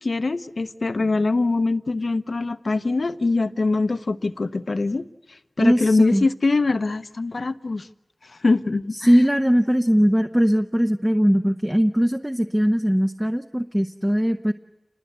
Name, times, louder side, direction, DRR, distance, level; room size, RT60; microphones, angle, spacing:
voice 1, 0.0-7.9 8.2-9.1, left 3 dB, 70° left, 12 dB, 0.9 m, -23 dB
voice 2, 5.6-6.2 9.0-14.5, equal, 10° right, 6 dB, 0.9 m, -20 dB
28.5 x 21.5 x 8.1 m, 0.98 s
wide cardioid pair, 65°, 0 cm